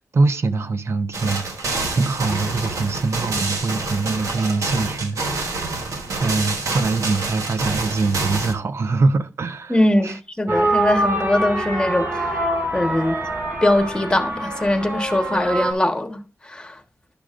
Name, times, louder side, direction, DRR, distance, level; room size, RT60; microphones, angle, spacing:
voice 1, 0.0-1.4 1.9-5.8 6.2-9.8 10.0-10.2 10.5-10.6, right 3 dB, 60° right, 0.6 m, -23 dB
sound 1, 1.1-8.5, right 3 dB, 85° right, 1.3 m, -27 dB
voice 2, 9.7-12.5 12.7-13.2 13.6-16.8, left 1 dB, 15° left, 1.3 m, -21 dB
sound 2, 10.5-15.7, right 1 dB, 40° right, 2.2 m, -24 dB
12.0 x 6.1 x 2.5 m
cardioid pair, 75°, 5 cm